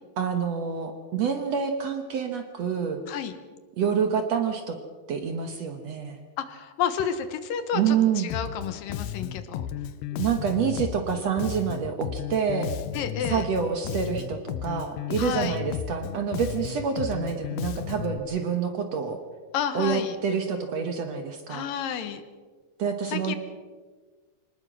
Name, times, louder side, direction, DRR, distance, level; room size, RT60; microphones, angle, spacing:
voice 1, 0.2-3.0 3.8-4.8 5.1-6.2 7.7-8.3 10.1-12.7 13.3-19.2 19.7-21.7 22.8-23.4, right 7 dB, 60° right, 6 dB, 2.0 m, -27 dB
voice 2, 6.4-9.7 12.9-13.5 15.2-15.6 19.5-20.2 21.5-22.2 23.1-23.4, left 8 dB, 70° left, 10 dB, 2.8 m, -30 dB
Bass guitar, 8.3-18.2, left 10 dB, 90° left, 2.7 m, -34 dB
25.0 x 19.5 x 6.3 m, 1.5 s
omnidirectional pair, 4.2 m